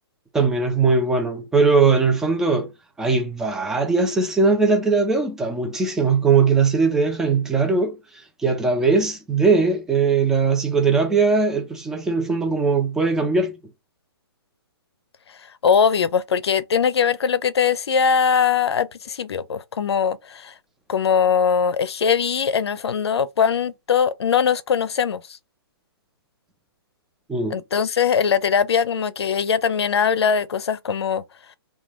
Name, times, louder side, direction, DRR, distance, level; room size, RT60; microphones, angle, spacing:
voice 1, 0.3-2.7 3.0-8.0 8.4-13.6 27.3-27.6, right 4 dB, 5° right, 0.4 m, -20 dB
voice 2, 15.6-20.5 20.9-25.2 27.5-31.2, left 7 dB, 85° left, 0.5 m, -21 dB
2.4 x 2.2 x 3.0 m
hypercardioid pair, 150°, 13 cm